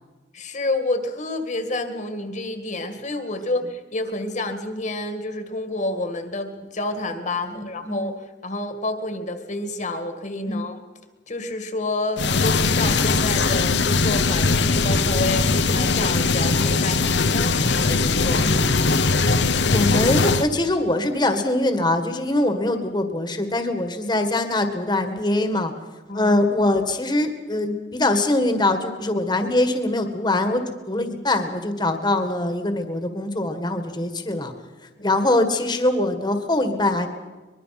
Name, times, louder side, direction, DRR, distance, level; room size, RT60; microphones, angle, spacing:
voice 1, 0.3-10.8 11.3-19.0 26.1-26.3 35.0-35.2, left 2 dB, 45° left, 7 dB, 2.0 m, -29 dB
voice 2, 7.5-8.1 10.5-10.6 18.3-18.6 19.7-25.7 26.1-34.5 35.0-37.1, left 2 dB, 25° left, 7 dB, 1.8 m, -23 dB
sound 1, 12.2-20.5, left 3 dB, 75° left, 1.0 m, -20 dB
23.5 x 22.0 x 6.0 m, 1.2 s
head